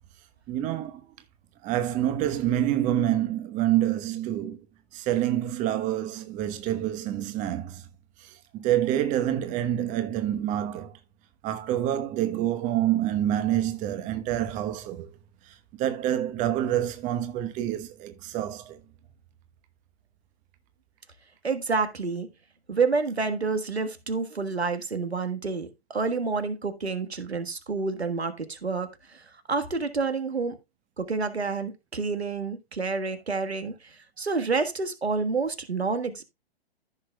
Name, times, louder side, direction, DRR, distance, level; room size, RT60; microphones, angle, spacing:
voice 1, 0.5-1.0 1.6-4.6 4.9-7.8 8.2-11.0 11.4-15.1 15.5-18.8, right 12 dB, 25° right, 1.0 m, -27 dB
voice 2, 21.4-22.3 22.7-30.5 31.0-36.2, right 4 dB, 85° right, 1.5 m, -29 dB
14.5 x 6.0 x 2.2 m
figure-of-eight pair, 115°, 31 cm